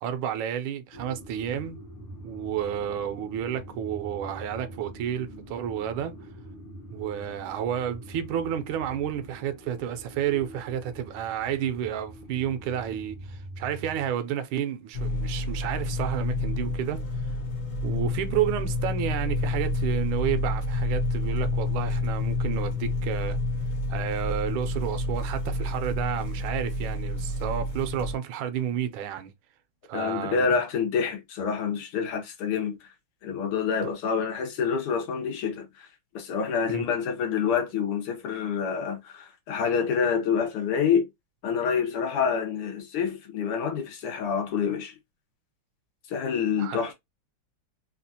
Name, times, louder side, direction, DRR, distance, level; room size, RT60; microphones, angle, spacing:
voice 1, 0.0-1.8 2.2-6.1 6.9-17.3 17.8-23.4 23.9-29.3 29.9-30.5 33.8-33.9 36.7-36.9 46.6-46.8, right 9 dB, 75° right, 1.4 m, -31 dB
sound 1, 0.9-14.1, equal, 65° left, 1.8 m, -44 dB
sound 2, 14.9-28.1, left 2 dB, 50° left, 1.1 m, -29 dB
voice 2, 29.9-32.8 33.2-35.9 36.2-41.1 41.4-44.9 46.1-46.9, left 6 dB, 90° left, 2.0 m, -27 dB
4.2 x 2.4 x 2.7 m
omnidirectional pair, 2.3 m